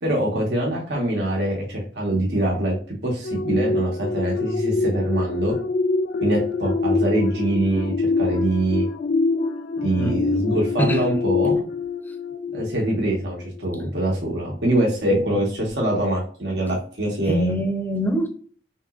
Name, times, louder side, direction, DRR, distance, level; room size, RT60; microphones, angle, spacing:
voice 1, 0.0-2.7 3.0-5.5 6.2-8.9 9.8-11.5 12.5-17.6, right 1 dB, 75° right, 1.1 m, -24 dB
sound 1, 3.2-13.1 13.6-13.8, left 3 dB, 60° left, 0.4 m, -25 dB
voice 2, 17.2-18.3, equal, 10° left, 0.5 m, -24 dB
3.7 x 2.9 x 2.4 m
head